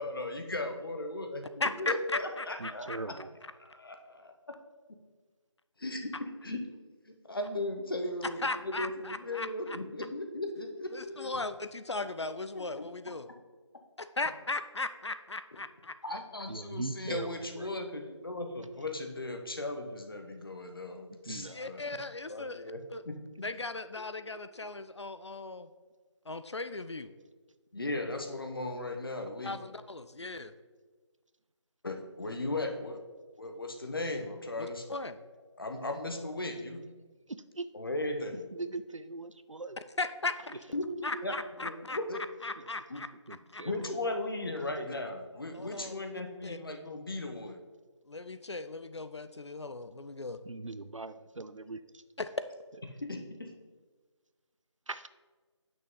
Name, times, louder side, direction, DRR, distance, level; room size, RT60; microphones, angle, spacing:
voice 1, 0.0-2.9 3.9-4.3 5.8-6.6 7.1-11.4 12.5-12.9 16.0-21.8 22.3-22.8 23.0-23.2 24.0-24.3 27.7-29.6 31.8-33.0 33.4-35.0 35.6-36.8 37.7-38.5 40.7-41.3 41.6-42.2 42.9-43.0 43.6-47.6 52.9-53.5, left 2 dB, 50° left, 4 dB, 1.1 m, -37 dB
voice 2, 1.6-3.0 8.4-9.8 10.9-13.3 14.0-15.9 21.5-23.0 23.4-25.7 26.3-27.1 29.4-30.5 34.6-35.2 40.0-40.5 41.0-42.0 42.4-43.1 43.5-43.6 45.5-46.6 48.1-50.4 52.2-52.3, left 3 dB, 65° left, 11 dB, 0.5 m, -37 dB
voice 3, 2.6-3.3 16.5-17.3 17.6-17.7 21.1-21.7 37.3-37.7 38.5-39.8 42.6-42.7 43.3-43.9 50.5-51.8 54.9-55.1, right 3 dB, 90° right, 13 dB, 0.6 m, -40 dB
8.7 x 6.2 x 3.9 m, 1.4 s
figure-of-eight pair, 165°, 16 cm